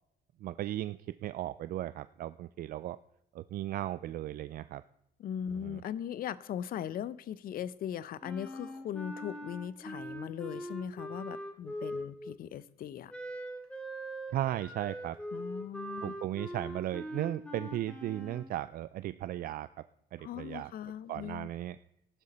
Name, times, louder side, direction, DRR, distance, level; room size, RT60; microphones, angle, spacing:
voice 1, 0.4-3.0 3.3-4.8 5.6-5.8 14.3-15.2 16.0-19.7 20.1-20.7 21.1-21.8, right 13 dB, 60° right, 0.4 m, -36 dB
voice 2, 5.2-13.1 15.3-16.2 20.2-21.5, left 9 dB, 60° left, 0.7 m, -39 dB
Wind instrument woodwind instrument, 8.2-12.4 13.1-18.5, equal, 5° left, 2.1 m, -42 dB
14.0 x 12.0 x 4.2 m
cardioid pair, 110°, 17 cm